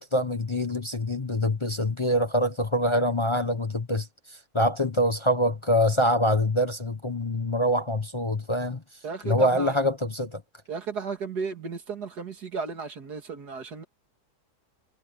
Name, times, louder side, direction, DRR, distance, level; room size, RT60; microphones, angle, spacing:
voice 1, 0.0-8.8 9.2-10.4, equal, 20° left, 1.0 m, -25 dB
voice 2, 9.0-9.8 10.7-13.8, right 5 dB, 85° right, 2.7 m, -34 dB
omnidirectional pair, 1.7 m